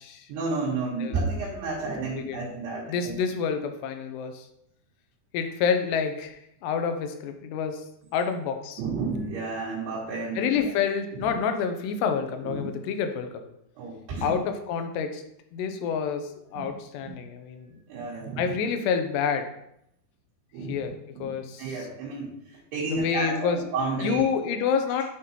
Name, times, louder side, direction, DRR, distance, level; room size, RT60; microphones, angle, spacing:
voice 1, 0.3-3.2 8.8-10.7 11.2-11.4 12.4-12.7 13.8-14.4 16.5-16.7 17.0-17.1 17.9-18.5 20.5-22.4 22.7-24.3, right 3 dB, 80° right, -7 dB, 3.3 m, -31 dB
voice 2, 2.9-4.4 5.3-7.8 8.1-8.8 10.4-13.3 14.2-15.2 15.5-17.7 18.4-19.5 20.7-20.9 21.2-21.9 22.8-23.6 24.0-25.0, left 6 dB, 90° left, 6 dB, 2.8 m, -28 dB
9.6 x 3.7 x 2.9 m, 0.77 s
omnidirectional pair, 4.8 m